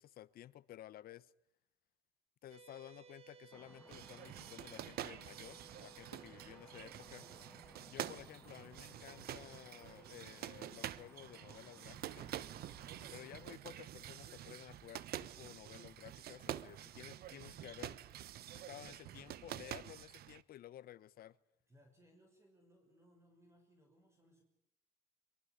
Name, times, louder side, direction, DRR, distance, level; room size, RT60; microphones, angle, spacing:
voice 1, 0.0-1.3 2.4-7.3 7.9-12.3 13.1-18.0 18.7-21.4, left 12 dB, 60° left, 1.1 m, -54 dB
sound 1, 2.5-15.1, right 8 dB, 35° right, 1.7 m, -64 dB
sound 2, 3.5-13.5, left 2 dB, 10° left, 1.4 m, -63 dB
sound 3, 3.9-20.4, right 12 dB, 65° right, 1.2 m, -48 dB
voice 2, 6.0-6.3 7.7-8.0 12.9-13.2 21.7-24.4, equal, 15° right, 6.3 m, -67 dB
23.5 x 23.5 x 9.7 m
cardioid pair, 110°, 17 cm